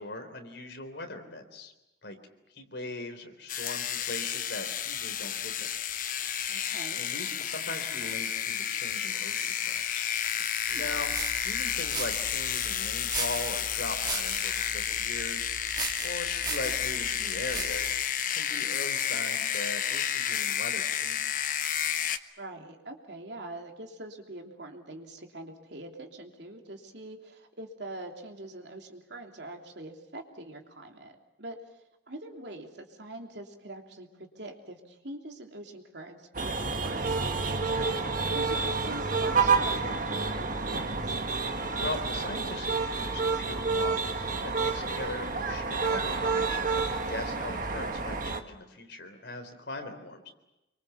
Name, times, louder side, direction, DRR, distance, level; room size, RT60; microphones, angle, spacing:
voice 1, 0.0-1.7 2.0-2.2 2.5-5.7 6.3-6.5 7.0-10.1 10.7-11.1 11.4-15.5 16.0-21.3 41.8-50.3, left 2 dB, 65° left, 6 dB, 3.7 m, -40 dB
sound 1, 3.5-22.2, left 9 dB, 45° left, 1.0 m, -31 dB
voice 2, 6.5-7.0 10.7-11.1 22.4-31.6 32.1-41.1 47.7-47.9, right 1 dB, 65° right, 3 dB, 3.1 m, -44 dB
sound 2, 10.7-18.0, right 4 dB, 20° right, 1.6 m, -39 dB
sound 3, 36.3-48.4, right 4 dB, 45° right, 1.5 m, -29 dB
27.0 x 24.0 x 7.1 m, 0.94 s
head